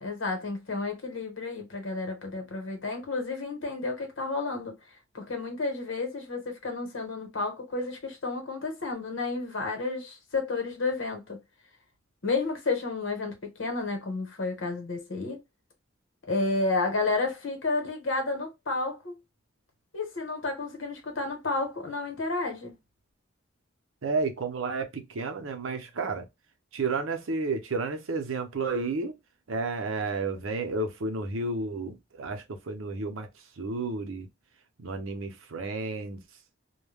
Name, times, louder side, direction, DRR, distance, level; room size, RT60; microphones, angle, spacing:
voice 1, 0.0-4.8 5.1-11.4 12.2-15.4 16.3-19.2 19.9-22.7, left 3 dB, 80° left, 1.1 m, -31 dB
voice 2, 24.0-26.3 26.7-29.1 29.5-33.3 33.6-34.3 34.8-36.2, right 3 dB, 85° right, 0.7 m, -31 dB
2.2 x 2.2 x 3.3 m
head